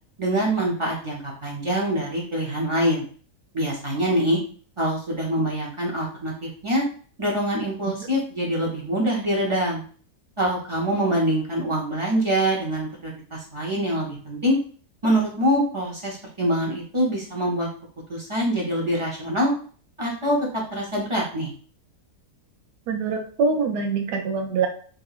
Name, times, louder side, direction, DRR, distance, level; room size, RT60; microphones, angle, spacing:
voice 1, 0.2-3.0 3.5-4.4 4.8-6.8 7.2-9.8 10.4-14.6 15.0-17.7 18.1-19.5 20.0-20.4 20.7-21.5, equal, 45° right, -4 dB, 0.3 m, -24 dB
voice 2, 22.9-24.7, right 4 dB, 80° right, 3 dB, 1.2 m, -24 dB
3.7 x 2.9 x 2.4 m, 0.43 s
omnidirectional pair, 1.7 m